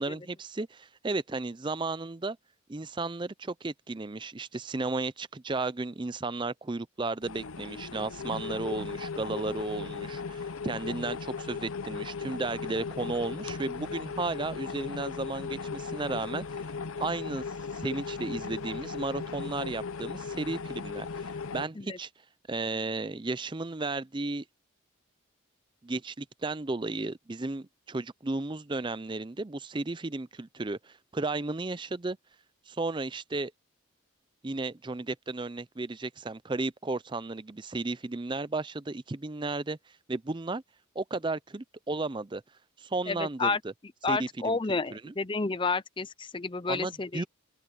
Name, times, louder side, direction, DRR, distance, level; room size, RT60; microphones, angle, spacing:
voice 1, 0.0-2.4 2.7-16.6 17.0-17.4 17.7-22.1 22.5-24.4 25.8-32.2 32.7-33.5 34.4-39.8 40.1-40.6 41.0-42.4 42.8-43.7 44.1-44.6 44.9-45.1 46.7-47.2, right 3 dB, 20° right, 0.5 m, -34 dB
sound 1, 7.2-21.7, left 5 dB, 80° left, 0.8 m, -37 dB
voice 2, 43.1-43.6 44.0-47.2, left 3 dB, 25° left, 0.6 m, -30 dB
open air
head